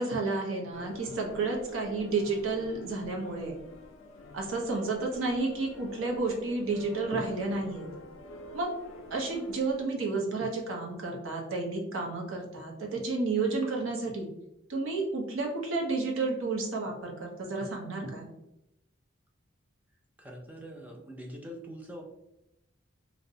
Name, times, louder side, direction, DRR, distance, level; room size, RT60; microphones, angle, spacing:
voice 1, 0.0-3.6 4.3-7.9 8.5-8.7 9.1-14.3 14.7-18.3, right 3 dB, 85° right, -1 dB, 0.7 m, -31 dB
sound 1, 0.7-9.9, left 2 dB, 70° left, 0.4 m, -47 dB
voice 2, 20.2-22.0, equal, 10° right, 0 dB, 0.3 m, -44 dB
2.6 x 2.1 x 2.6 m, 0.86 s
head